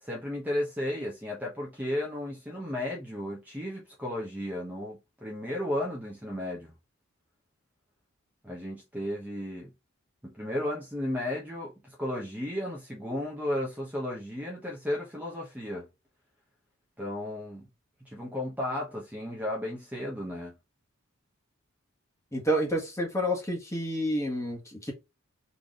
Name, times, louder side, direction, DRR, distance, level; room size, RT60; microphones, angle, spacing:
voice 1, 0.0-6.7 8.4-9.7 10.2-15.9 17.0-17.7 18.1-20.6, left 1 dB, 10° right, 0.9 m, -34 dB
voice 2, 22.3-24.9, equal, 15° left, 1.4 m, -29 dB
4.0 x 3.4 x 3.6 m
head